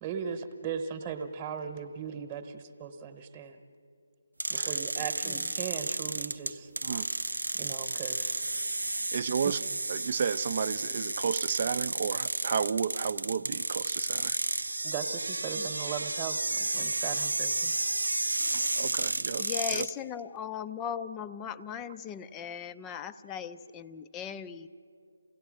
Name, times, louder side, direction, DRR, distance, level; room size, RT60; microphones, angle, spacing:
voice 1, 0.0-3.6 4.5-6.7 7.5-8.5 14.8-17.7 18.0-18.2, right 7 dB, 15° right, 5 dB, 1.2 m, -38 dB
sound 1, 4.4-19.9, right 2 dB, 80° right, 0.6 m, -32 dB
voice 2, 9.1-9.6 9.9-14.4 18.8-19.4 19.7-19.9, right 6 dB, 40° right, 14 dB, 0.6 m, -32 dB
voice 3, 19.4-24.7, left 8 dB, 15° left, 11 dB, 0.5 m, -38 dB
28.5 x 17.0 x 6.4 m, 2.3 s
figure-of-eight pair, 155°, 0 cm